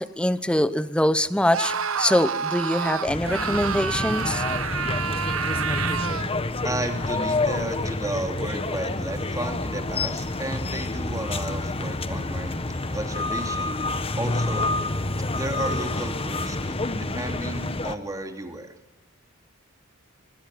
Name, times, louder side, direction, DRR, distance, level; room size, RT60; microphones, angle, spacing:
voice 1, 0.0-4.4, left 1 dB, 5° left, 14 dB, 0.9 m, -23 dB
Screaming, 1.5-6.4, right 6 dB, 70° right, 1.1 m, -28 dB
sound 1, 3.0-18.0, left 2 dB, 25° left, 1.2 m, -28 dB
voice 2, 6.6-13.8 14.2-14.8 15.3-18.7, right 1 dB, 15° right, 5 dB, 2.8 m, -33 dB
25.5 x 24.5 x 7.9 m, 0.98 s
head